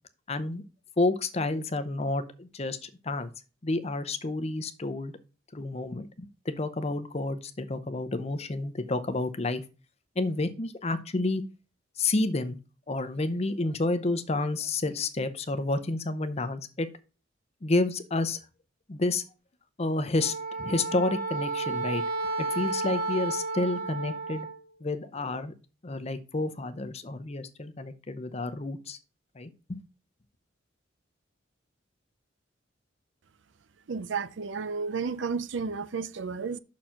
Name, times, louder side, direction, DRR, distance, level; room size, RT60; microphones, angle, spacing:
voice 1, 0.3-0.6 1.0-3.3 3.6-5.1 5.5-9.6 10.2-11.4 12.0-12.6 12.9-16.9 17.6-18.4 18.9-19.2 19.8-22.0 22.4-24.5 24.8-25.5 25.8-29.0 29.4-29.8, left 2 dB, 35° left, 0.7 m, -30 dB
Wind instrument woodwind instrument, 20.2-24.6, right 3 dB, 50° right, 1.5 m, -32 dB
voice 2, 33.9-36.6, right 5 dB, 70° right, 0.5 m, -32 dB
6.3 x 4.4 x 5.7 m
head